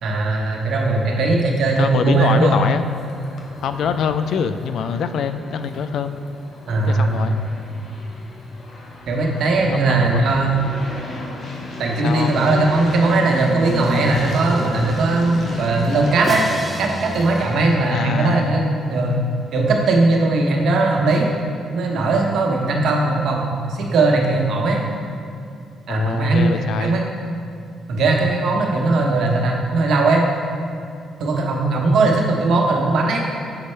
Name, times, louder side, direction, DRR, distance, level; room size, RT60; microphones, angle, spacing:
voice 1, 0.0-2.6 6.7-7.3 9.1-10.6 11.8-16.4 16.8-19.2 19.5-21.3 21.7-24.8 25.9-27.1 27.9-30.2 31.2-33.2, right 3 dB, 70° right, 0 dB, 0.9 m, -19 dB
voice 2, 1.8-2.9 3.6-6.2 6.9-7.4 9.7-10.5 12.0-12.4 17.9-18.6 22.8-22.9 25.9-27.0, left 7 dB, 70° left, 10 dB, 0.3 m, -24 dB
sound 1, 2.1-17.5, left 1 dB, 55° left, 1.0 m, -32 dB
Crash cymbal, 16.2-18.4, right 2 dB, 25° right, 0.4 m, -34 dB
6.8 x 5.3 x 3.2 m, 2.5 s
cardioid pair, 90°, 0 cm